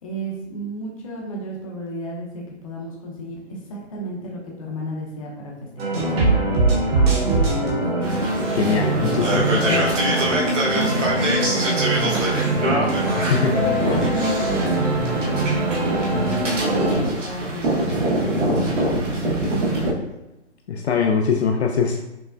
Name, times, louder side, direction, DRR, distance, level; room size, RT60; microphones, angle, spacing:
voice 1, 0.0-3.4 3.7-6.3 7.0-7.8 8.9-9.8 10.7-19.1 19.5-19.9, right 1 dB, 30° left, -2 dB, 0.7 m, -32 dB
sound 1, 5.8-17.0, right 3 dB, 55° right, 1.3 m, -23 dB
sound 2, 6.0-16.4, left 4 dB, 20° right, 0.4 m, -31 dB
sound 3, 8.0-19.9, right 1 dB, 90° right, 1.2 m, -24 dB
voice 2, 8.6-9.8 13.2-13.5 20.7-22.0, left 5 dB, 65° left, 2 dB, 0.5 m, -22 dB
5.7 x 2.1 x 2.5 m, 0.96 s
hypercardioid pair, 160°, 36 cm